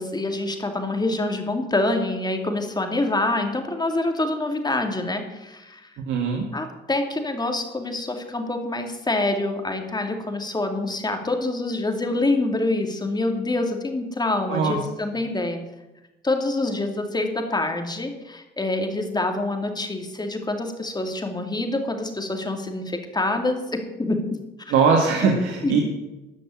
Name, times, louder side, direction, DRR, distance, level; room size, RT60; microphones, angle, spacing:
voice 1, 0.0-5.9 6.5-15.6 16.2-24.2 24.6-24.8 25.2-25.8, left 2 dB, 20° left, 5 dB, 2.4 m, -26 dB
voice 2, 6.1-6.5 14.5-14.8 24.7-25.8, right 5 dB, 85° right, 1 dB, 1.8 m, -20 dB
13.5 x 6.0 x 9.6 m, 1.0 s
cardioid pair, 90°, 20 cm